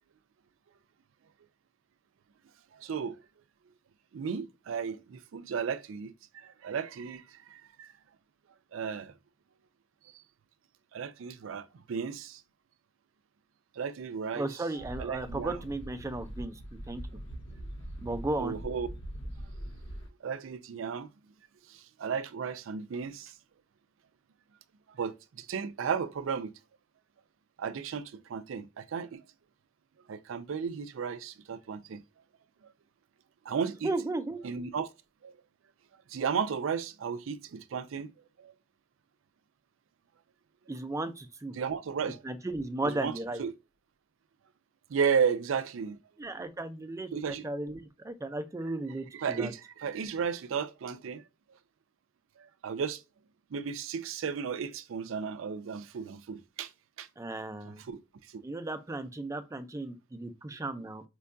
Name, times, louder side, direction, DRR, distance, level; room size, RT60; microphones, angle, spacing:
voice 1, 2.7-3.2 4.1-7.9 8.7-9.1 10.1-10.2 10.9-12.4 13.7-14.6 15.0-15.6 18.3-18.9 20.2-21.1 21.7-23.4 25.0-26.5 27.6-29.2 30.1-32.0 32.6-32.7 33.5-33.9 34.4-34.9 35.2-35.4 36.1-38.1 38.4-38.5 41.5-42.2 42.8-43.5 44.9-46.0 47.1-47.4 49.1-51.2 51.5-51.6 52.4-53.0 53.5-56.7 57.0-57.1 57.6-58.0 58.3-58.4, right 6 dB, 80° right, 0.4 m, -34 dB
voice 2, 14.3-16.6 16.9-17.0 18.0-18.6 33.8-34.4 40.7-41.5 42.2-43.4 46.2-49.5 57.2-57.8 58.4-61.0, right 2 dB, 15° right, 0.4 m, -35 dB
sound 1, 14.8-20.1, right 1 dB, 70° left, 1.1 m, -42 dB
4.4 x 2.2 x 2.5 m
head